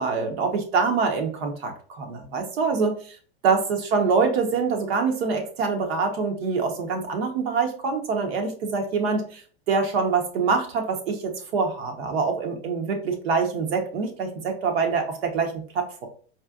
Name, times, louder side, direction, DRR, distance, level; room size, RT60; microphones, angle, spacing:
voice 1, 0.0-3.2 3.4-9.4 9.7-16.1, right 5 dB, 75° right, 3 dB, 1.1 m, -25 dB
4.3 x 2.4 x 2.4 m, 0.43 s
supercardioid pair, 130°, 31 cm